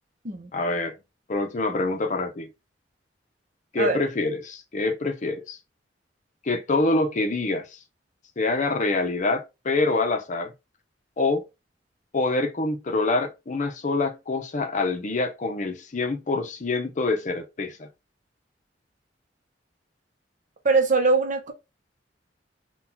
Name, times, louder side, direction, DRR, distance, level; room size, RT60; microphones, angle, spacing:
voice 1, 0.5-1.0 1.3-2.5 3.7-5.6 6.4-7.8 8.4-10.5 11.2-11.5 12.1-17.9, left 3 dB, 45° left, 0.6 m, -26 dB
voice 2, 20.6-21.5, right 3 dB, 45° right, 0.8 m, -22 dB
3.9 x 2.3 x 2.7 m
head